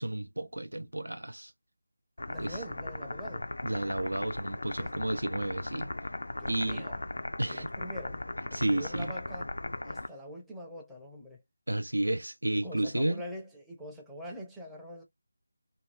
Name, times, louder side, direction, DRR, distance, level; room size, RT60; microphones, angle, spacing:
voice 1, 0.0-1.5 2.4-2.6 3.6-5.9 6.5-6.9 7.4-7.7 8.5-9.1 11.7-13.2, right 1 dB, 90° right, 0.4 m, -32 dB
sound 1, 2.2-10.1, left 2 dB, 75° left, 0.4 m, -38 dB
voice 2, 2.3-3.5 4.8-5.2 6.4-7.0 7.5-8.2 8.5-9.5 9.8-11.4 12.5-15.0, equal, 5° right, 0.5 m, -44 dB
2.6 x 2.3 x 3.1 m
figure-of-eight pair, 165°, 0 cm